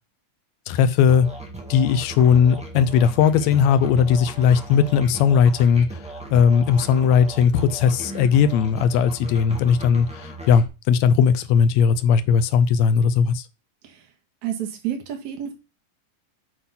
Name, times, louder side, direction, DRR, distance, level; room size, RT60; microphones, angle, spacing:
voice 1, 0.7-1.3 1.7-6.0 6.3-13.4, left 7 dB, 75° left, 1.7 m, -18 dB
Musical instrument, 1.1-10.7, right 2 dB, 5° right, 0.6 m, -37 dB
voice 2, 14.4-15.5, right 10 dB, 65° right, 2.7 m, -29 dB
7.7 x 4.1 x 5.6 m
omnidirectional pair, 3.6 m